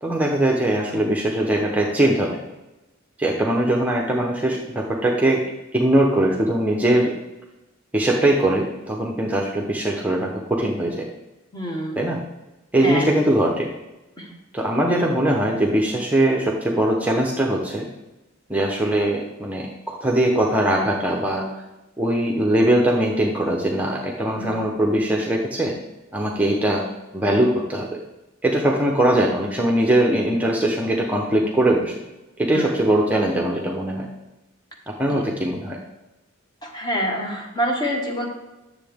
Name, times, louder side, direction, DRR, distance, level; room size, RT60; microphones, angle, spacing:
voice 1, 0.0-2.3 3.2-5.4 5.7-7.1 7.9-11.0 11.9-12.2 12.7-13.7 14.5-17.9 18.5-21.5 22.0-25.7 26.1-26.9 27.1-28.0 28.4-31.9 32.4-34.1 34.9-35.8, right 1 dB, 10° right, -1 dB, 0.7 m, -21 dB
voice 2, 11.5-12.0 12.8-13.0 14.2-14.3 24.4-24.6 32.5-32.7 35.0-35.2 36.6-38.3, equal, 20° left, 1 dB, 1.3 m, -26 dB
9.7 x 7.0 x 3.5 m, 1.0 s
head